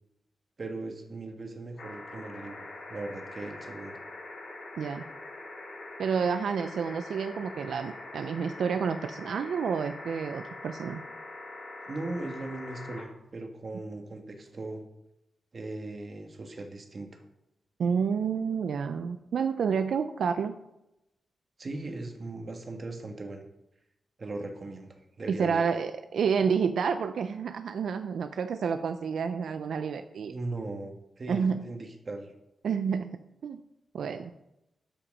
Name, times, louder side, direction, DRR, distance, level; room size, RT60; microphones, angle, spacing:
voice 1, 0.6-4.0 11.9-14.8 15.5-17.2 21.6-23.4 24.2-25.7 30.3-32.3, right 2 dB, 35° right, 4 dB, 1.5 m, -38 dB
sound 1, 1.8-13.0 14.5-14.6, left 2 dB, 85° left, 4.7 m, -43 dB
voice 2, 6.0-11.0 17.8-20.5 25.3-30.3 31.3-31.6 32.6-33.1 33.4-33.6 33.9-34.3, right 6 dB, 75° right, 9 dB, 0.5 m, -29 dB
12.5 x 5.8 x 5.4 m, 0.87 s
wide cardioid pair, 145°, 0 cm